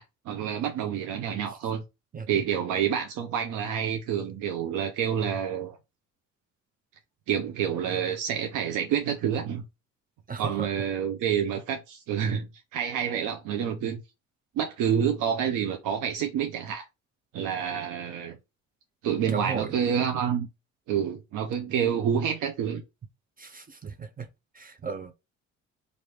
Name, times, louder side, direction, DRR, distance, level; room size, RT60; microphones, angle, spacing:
voice 1, 0.0-1.8 2.3-5.8 7.3-9.6 10.4-12.5 12.7-14.0 14.6-16.8 17.3-18.4 19.0-20.5 20.9-22.8, right 8 dB, 90° right, 0.7 m, -28 dB
voice 2, 10.3-10.7 19.3-19.8 23.4-24.3 24.5-25.1, right 5 dB, 30° right, 0.5 m, -35 dB
3.3 x 2.6 x 4.4 m
cardioid pair, 90°, 30 cm